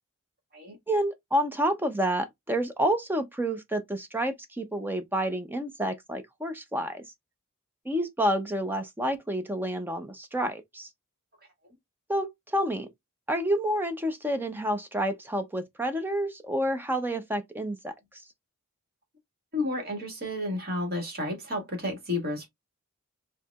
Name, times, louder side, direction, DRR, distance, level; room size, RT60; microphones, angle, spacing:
voice 1, 0.9-7.0 7.9-10.9 12.1-12.3 12.5-12.9 13.3-17.9, right 1 dB, 10° right, 0.5 m, -29 dB
voice 2, 19.5-22.5, left 2 dB, 45° right, 1.8 m, -31 dB
4.7 x 2.7 x 2.3 m
head